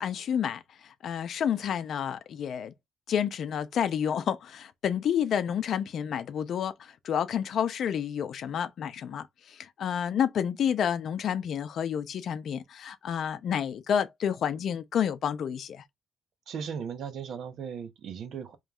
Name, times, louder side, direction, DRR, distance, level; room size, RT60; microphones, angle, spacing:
voice 1, 0.0-2.7 3.1-15.8, left 8 dB, 60° left, 0.6 m, -30 dB
voice 2, 16.5-18.6, right 7 dB, 65° right, 0.8 m, -37 dB
5.2 x 3.1 x 2.4 m
cardioid pair, 125°, 0 cm